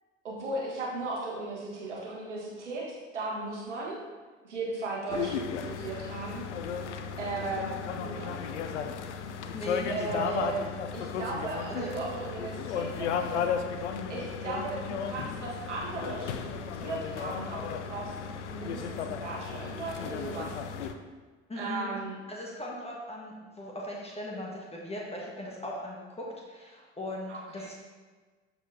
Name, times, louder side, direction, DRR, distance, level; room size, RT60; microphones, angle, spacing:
voice 1, 0.2-4.0 4.4-5.3 5.6-6.4 7.2-7.7 8.0-8.4 9.9-10.7 10.9-13.4 14.1-18.1 18.5-20.6 21.6-22.2 27.3-27.7, right 3 dB, 80° right, -4 dB, 1.5 m, -36 dB
sound 1, 5.1-20.9, left 6 dB, 75° left, 0.5 m, -35 dB
voice 2, 9.5-10.4 11.7-11.9 21.5-21.9 22.3-27.7, left 1 dB, 15° left, -3 dB, 1.4 m, -39 dB
12.5 x 4.3 x 2.7 m, 1.4 s
figure-of-eight pair, 55°, 35 cm